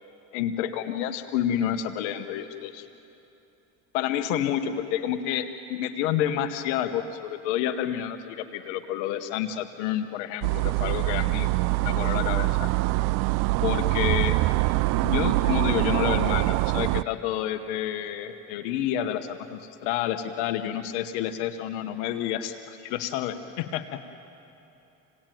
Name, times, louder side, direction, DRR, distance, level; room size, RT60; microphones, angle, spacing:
voice 1, 0.3-2.9 3.9-11.5 11.8-12.7 13.6-14.4 15.0-24.2, left 10 dB, 85° left, 8 dB, 1.2 m, -29 dB
sound 1, 10.4-17.0, right 21 dB, 70° right, 0.5 m, -24 dB
27.5 x 18.5 x 9.1 m, 2.9 s
supercardioid pair, 100°, 34 cm